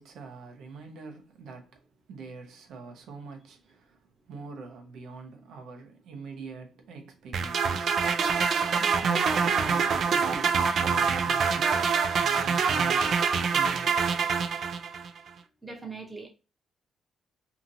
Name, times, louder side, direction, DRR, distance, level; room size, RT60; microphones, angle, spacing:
voice 1, 0.0-1.8 2.1-4.0 4.3-7.9 8.8-13.2 13.5-14.0, right 4 dB, 80° right, 0.7 m, -44 dB
sound 1, 7.3-15.1, right 5 dB, 60° right, 0.3 m, -25 dB
voice 2, 15.6-16.3, right 4 dB, 15° right, 0.8 m, -40 dB
2.8 x 2.6 x 2.6 m
cardioid pair, 90°, 0 cm